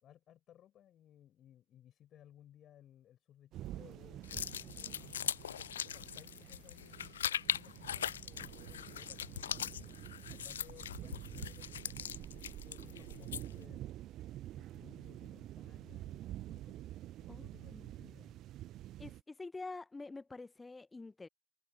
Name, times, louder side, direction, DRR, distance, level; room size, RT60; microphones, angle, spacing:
voice 1, 0.0-9.8 10.3-13.8 14.5-16.8 17.2-18.4, left 11 dB, 30° left, 6.2 m, -61 dB
sound 1, 3.5-19.2, right 14 dB, 35° right, 1.1 m, -48 dB
sound 2, 4.2-13.6, left 9 dB, 65° left, 0.8 m, -41 dB
voice 2, 17.3-17.9 19.0-21.3, left 3 dB, 10° left, 1.3 m, -47 dB
figure-of-eight pair, 90°, 0 cm